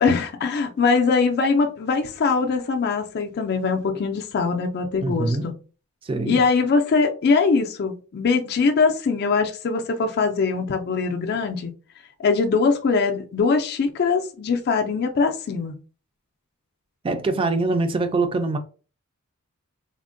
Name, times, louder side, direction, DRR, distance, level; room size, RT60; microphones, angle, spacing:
voice 1, 0.0-5.4 6.3-11.7 12.2-15.8, left 4 dB, 50° left, 0.4 m, -22 dB
voice 2, 5.0-5.5 6.0-6.4 17.0-18.6, right 3 dB, 25° right, 0.3 m, -24 dB
3.4 x 2.1 x 2.5 m
head